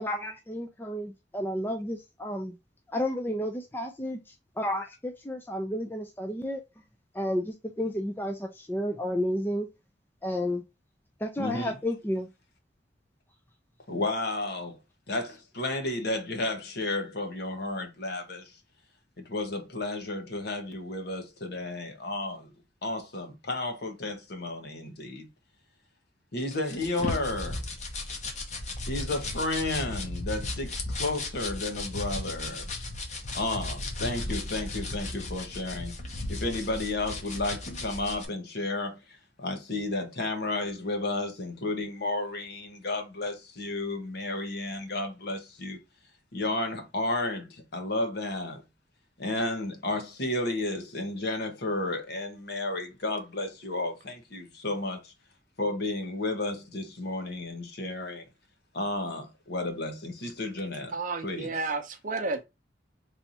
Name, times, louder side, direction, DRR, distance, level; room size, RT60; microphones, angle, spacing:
voice 1, 0.0-2.6 2.9-4.2 4.6-6.6 7.1-9.7 10.2-10.6 11.2-12.3, left 1 dB, 10° left, 0.5 m, -31 dB
voice 2, 11.4-11.7 13.9-14.8 15.1-18.5 19.2-22.5 22.8-25.3 26.3-27.6 28.9-32.7 33.3-36.0 36.3-39.0 39.4-45.8 46.3-48.6 49.2-55.1 55.6-58.3 58.7-60.9 61.2-61.5, left 2 dB, 60° left, 1.1 m, -32 dB
sound 1, 26.5-38.2, left 2 dB, 40° left, 1.0 m, -35 dB
voice 3, 60.9-62.4, right 3 dB, 45° right, 0.7 m, -32 dB
3.4 x 2.7 x 4.2 m
head